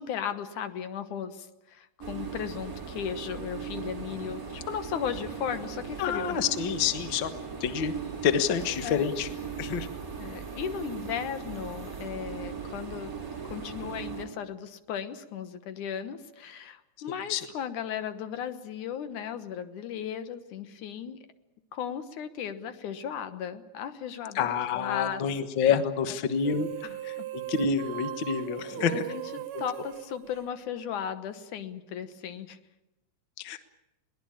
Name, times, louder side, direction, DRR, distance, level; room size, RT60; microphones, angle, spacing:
voice 1, 0.0-6.4 8.8-9.1 10.2-13.1 13.4-21.3 21.7-24.4 24.7-25.2 26.8-27.3 28.8-32.6, left 8 dB, 80° left, 10 dB, 2.7 m, -36 dB
sound 1, 2.0-14.2, right 6 dB, 30° right, 3.2 m, -38 dB
voice 2, 6.0-7.3 7.6-7.9 8.2-9.3 9.6-9.9 17.3-17.4 24.3-26.7 27.3-29.1 33.4-33.6, left 7 dB, 50° left, 9 dB, 1.6 m, -27 dB
sound 2, 26.4-31.1, right 15 dB, 70° right, 2.4 m, -39 dB
22.0 x 19.5 x 8.8 m, 0.95 s
omnidirectional pair, 3.5 m